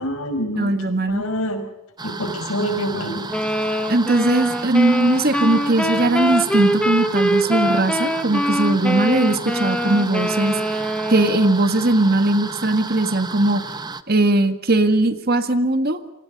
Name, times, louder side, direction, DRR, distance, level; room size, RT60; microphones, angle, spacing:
voice 1, 0.0-0.7 1.1-1.6 2.0-3.3, equal, 80° left, 8 dB, 5.5 m, -26 dB
voice 2, 0.6-1.2 3.9-10.8 11.1-13.6 14.1-16.0, right 2 dB, 45° right, 9 dB, 1.8 m, -19 dB
sound 1, 2.0-14.0, right 4 dB, 20° right, 0.9 m, -33 dB
sound 2, 3.3-11.7, equal, 5° left, 1.4 m, -23 dB
28.5 x 25.0 x 5.4 m, 0.94 s
head